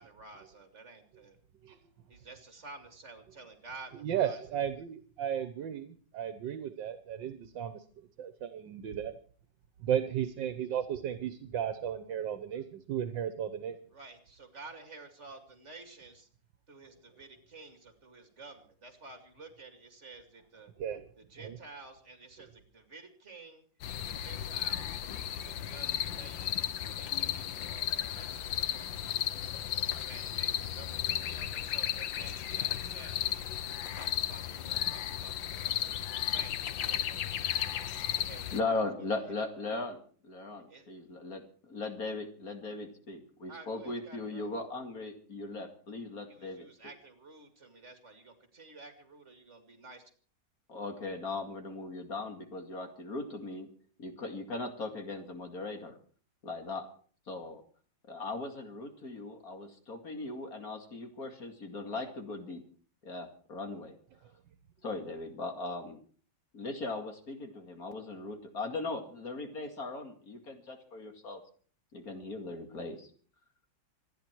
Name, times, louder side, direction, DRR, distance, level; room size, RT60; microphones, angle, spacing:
voice 1, 0.0-1.4 2.1-4.6 13.9-16.3 16.7-20.7 21.3-23.6 24.0-25.0 25.4-29.3 29.8-33.3 33.9-37.7 38.1-38.5 40.7-40.9 43.5-44.5 46.2-50.0, right 3 dB, 40° right, 6 dB, 2.7 m, -52 dB
voice 2, 4.0-7.8 8.2-9.1 9.8-13.8 20.8-21.0 21.4-21.6, right 9 dB, 80° right, 10 dB, 1.7 m, -34 dB
sound 1, 23.8-38.6, left 10 dB, 90° left, 1.7 m, -34 dB
voice 3, 38.5-46.7 50.7-53.7 54.0-56.0 56.4-56.9 57.3-57.6 58.1-62.6 63.0-63.9 64.8-66.0 66.5-71.4 71.9-73.1, left 3 dB, 50° left, 5 dB, 2.7 m, -38 dB
26.5 x 10.5 x 4.6 m, 0.43 s
omnidirectional pair, 2.0 m